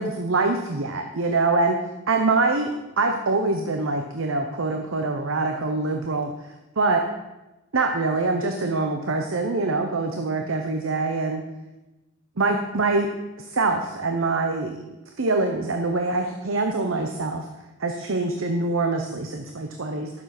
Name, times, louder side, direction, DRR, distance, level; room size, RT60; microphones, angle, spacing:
voice 1, 0.0-1.8 2.1-2.7 3.0-7.0 7.7-11.4 12.4-13.1 13.5-14.8 15.2-17.4 17.8-20.1, right 3 dB, 85° right, 5 dB, 0.9 m, -24 dB
11.0 x 7.2 x 6.0 m, 1.0 s
head